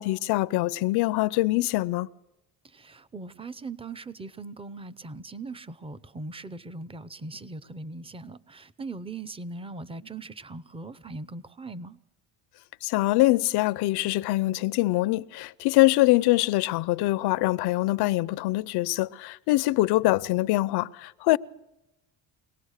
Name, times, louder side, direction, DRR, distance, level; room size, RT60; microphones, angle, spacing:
voice 1, 0.0-2.1 12.8-21.4, left 18 dB, 75° left, 0.7 m, -24 dB
voice 2, 2.6-12.0, right 3 dB, 15° right, 0.7 m, -40 dB
23.5 x 18.5 x 6.6 m
cardioid pair, 115°, 40 cm